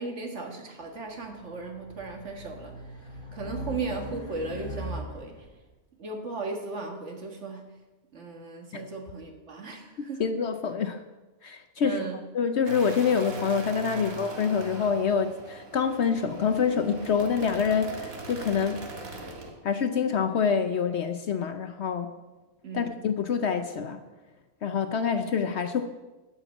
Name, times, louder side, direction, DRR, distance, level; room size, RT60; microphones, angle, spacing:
voice 1, 0.0-2.7 3.3-5.3 6.0-7.7 8.1-10.2 11.8-12.2 13.9-14.1 22.6-23.0, right 3 dB, 55° right, 2 dB, 1.9 m, -36 dB
Race car auto racing, 1.1-5.5, equal, 20° left, 2.9 m, -40 dB
voice 2, 10.0-11.0 11.4-12.0 12.3-18.9 19.6-22.1 22.7-24.0 24.6-25.9, left 6 dB, 60° left, 8 dB, 0.8 m, -26 dB
sound 1, 12.7-19.5, right 1 dB, 75° right, 2.1 m, -40 dB
12.5 x 5.7 x 8.1 m, 1.2 s
omnidirectional pair, 1.5 m